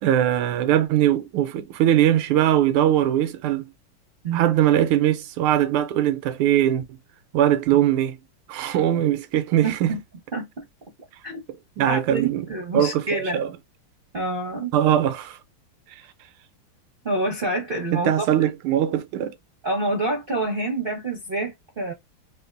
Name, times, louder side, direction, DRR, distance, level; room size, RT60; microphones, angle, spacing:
voice 1, 0.0-3.7 4.3-6.8 7.3-8.2 8.5-10.0 11.8-12.5 12.7-13.5 14.7-15.4 17.9-19.3, right 11 dB, 85° right, 1.5 m, -21 dB
voice 2, 9.6-10.0 10.3-10.6 11.2-11.4 11.9-13.4 14.1-14.7 17.0-18.4 19.6-21.9, right 2 dB, 50° right, 0.6 m, -27 dB
3.5 x 2.6 x 2.5 m
omnidirectional pair, 2.3 m